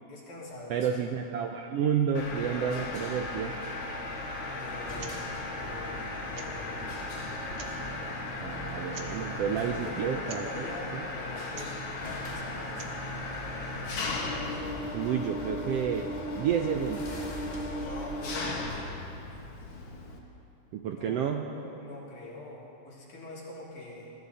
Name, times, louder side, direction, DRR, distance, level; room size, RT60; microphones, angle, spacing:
voice 1, 0.1-0.9 4.6-7.1 9.5-13.0 17.8-18.8 20.9-24.1, left 1 dB, 80° left, -6 dB, 4.6 m, -44 dB
voice 2, 0.7-3.6 8.4-10.7 14.9-16.1 16.3-17.2 20.8-21.5, right 7 dB, 75° right, 4 dB, 1.5 m, -30 dB
Mechanisms, 2.1-20.2, left 2 dB, 55° left, 2.3 m, -36 dB
sound 1, 4.9-10.4 11.4-11.5 11.7-11.8 12.0-19.5, left 1 dB, 35° left, 0.7 m, -46 dB
sound 2, 5.0-5.2 5.4-5.5 6.3-6.7 7.4-7.9 8.9-9.2 10.2-10.5 11.5-11.8 12.6-13.0, right 6 dB, 60° right, 1.8 m, -46 dB
21.0 x 14.5 x 4.1 m, 2.6 s
omnidirectional pair, 3.4 m